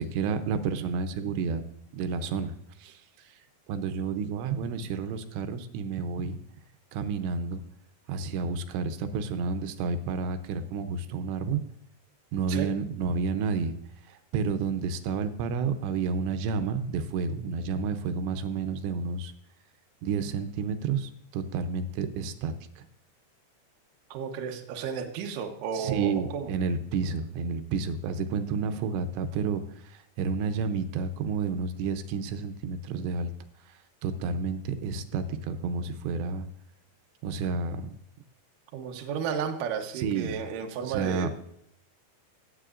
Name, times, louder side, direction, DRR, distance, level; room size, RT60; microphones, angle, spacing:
voice 1, 0.0-1.6 1.9-2.5 2.8-3.0 3.7-6.4 6.9-7.6 8.1-11.6 12.3-13.8 14.1-19.3 20.0-22.8 25.7-29.6 30.2-33.3 34.0-36.5 37.2-37.8 40.0-40.4 40.9-41.3, right 5 dB, 85° right, 9 dB, 3.0 m, -30 dB
voice 2, 24.1-26.5 38.7-41.3, right 7 dB, 70° right, 4 dB, 2.1 m, -33 dB
18.0 x 7.7 x 2.5 m, 0.77 s
omnidirectional pair, 5.0 m